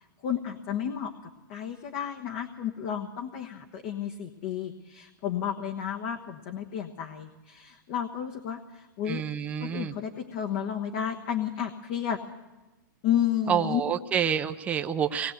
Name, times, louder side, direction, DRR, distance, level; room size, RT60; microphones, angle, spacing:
voice 1, 0.2-1.1 1.5-9.2 9.6-12.2 13.0-13.8, left 9 dB, 35° left, 5 dB, 1.2 m, -32 dB
voice 2, 9.1-9.9 13.5-15.3, right 8 dB, 10° right, 7 dB, 0.7 m, -28 dB
24.5 x 19.5 x 8.0 m, 1.1 s
supercardioid pair, 165°, 11 cm